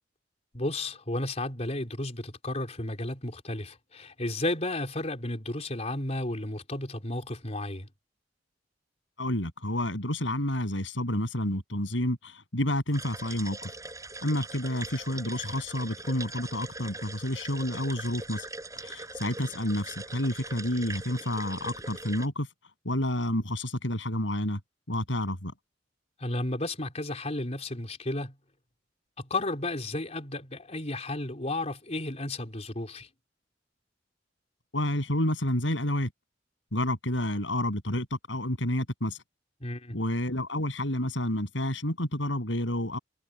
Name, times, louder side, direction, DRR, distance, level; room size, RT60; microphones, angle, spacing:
voice 1, 0.5-7.9 26.2-28.4 29.2-33.1 39.6-40.0, left 2 dB, 35° left, 4.1 m, -33 dB
voice 2, 9.2-13.7 14.2-18.5 18.8-22.5 22.8-24.6 24.9-25.5 34.7-36.1 36.7-39.2 39.9-43.0, left 1 dB, 80° left, 7.7 m, -29 dB
sound 1, 12.9-22.3, right 3 dB, 20° right, 7.6 m, -41 dB
head